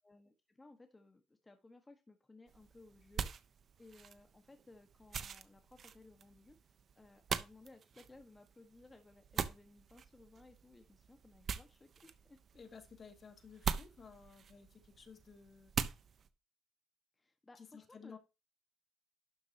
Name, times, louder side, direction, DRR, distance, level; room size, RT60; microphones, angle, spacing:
voice 1, 0.0-3.5 3.8-12.8 17.2-18.2, left 2 dB, 20° left, 5 dB, 1.6 m, -60 dB
sound 1, 2.5-16.3, right 7 dB, 55° right, 1.0 m, -44 dB
voice 2, 12.5-15.7 17.6-18.2, left 6 dB, 45° left, 6 dB, 2.3 m, -55 dB
12.0 x 7.6 x 3.0 m, 0.27 s
cardioid pair, 90°, 0 cm